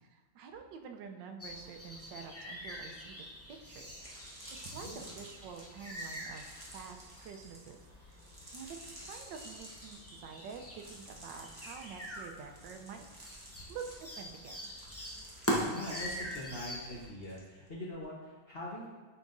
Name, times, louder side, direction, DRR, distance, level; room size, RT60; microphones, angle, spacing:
voice 1, 0.1-4.0 4.6-7.8 8.1-8.2 8.5-13.1 13.7-14.6, right 6 dB, 85° right, 4 dB, 1.3 m, -48 dB
sound 1, 1.4-17.1, equal, 20° left, 0.4 m, -43 dB
sound 2, 4.0-17.4 17.7-18.0, right 1 dB, 15° right, 0.8 m, -52 dB
voice 2, 4.8-5.1 15.6-18.9, left 1 dB, 40° left, -5 dB, 1.0 m, -43 dB
9.1 x 4.6 x 2.6 m, 1.3 s
omnidirectional pair, 1.9 m